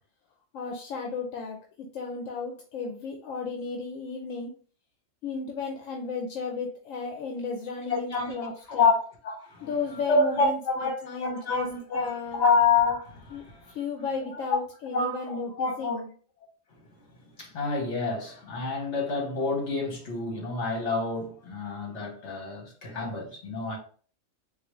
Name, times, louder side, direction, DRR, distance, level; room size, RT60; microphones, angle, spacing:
voice 1, 0.5-4.5 5.2-8.9 9.6-11.7 11.9-12.5 13.3-16.1, left 4 dB, 80° left, 1.0 m, -34 dB
voice 2, 7.9-9.0 9.2-9.7 10.1-12.1 12.4-13.7 14.3-14.4 14.9-16.0 16.7-16.8 17.4-23.8, left 4 dB, 60° left, 1.4 m, -28 dB
4.0 x 2.4 x 3.1 m
omnidirectional pair, 1.3 m